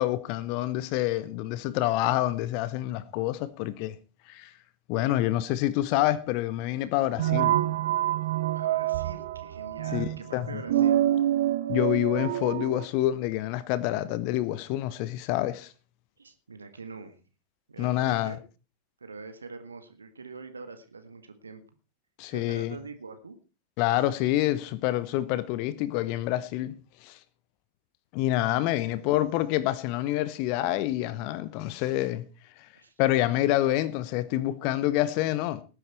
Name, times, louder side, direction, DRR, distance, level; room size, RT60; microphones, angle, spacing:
voice 1, 0.0-3.9 4.3-4.5 4.9-7.6 9.9-10.6 11.7-15.7 17.8-18.3 22.2-22.8 23.8-27.2 28.1-32.3 33.0-35.6, left 15 dB, 45° left, 1.1 m, -27 dB
sound 1, 7.2-12.8, right 13 dB, 55° right, 1.0 m, -27 dB
voice 2, 8.6-11.0 16.2-17.2 17.7-18.4 19.0-21.6 22.3-23.4 28.8-29.3 32.7-32.9, right 4 dB, 75° right, 1.8 m, -44 dB
18.5 x 10.0 x 4.4 m
figure-of-eight pair, 90°, 0 cm